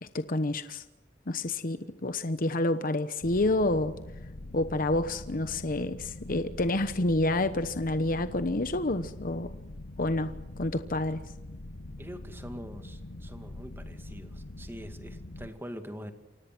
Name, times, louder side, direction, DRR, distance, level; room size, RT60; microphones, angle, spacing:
voice 1, 0.0-0.8 1.3-3.9 4.5-9.5 10.0-11.2, left 2 dB, 50° left, 10 dB, 1.0 m, -29 dB
sound 1, 3.2-15.5, left 1 dB, 75° left, 1.2 m, -43 dB
voice 2, 12.0-16.1, equal, 15° right, 7 dB, 2.3 m, -44 dB
29.5 x 24.5 x 6.2 m, 0.98 s
head